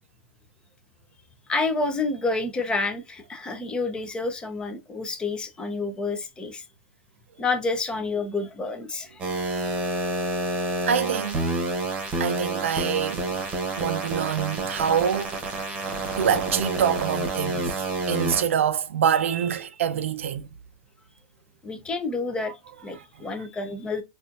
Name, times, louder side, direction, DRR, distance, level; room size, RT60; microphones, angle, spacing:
voice 1, 1.5-6.6 7.4-9.2 21.6-24.0, left 3 dB, 15° left, 0.6 m, -29 dB
sound 1, 9.2-18.4, right 2 dB, 20° right, 1.1 m, -28 dB
voice 2, 10.8-11.5 12.2-13.2 13.7-15.4 16.2-17.7 18.1-20.5, right 8 dB, 80° right, 0.5 m, -25 dB
4.2 x 2.5 x 2.5 m
hypercardioid pair, 140°, 7 cm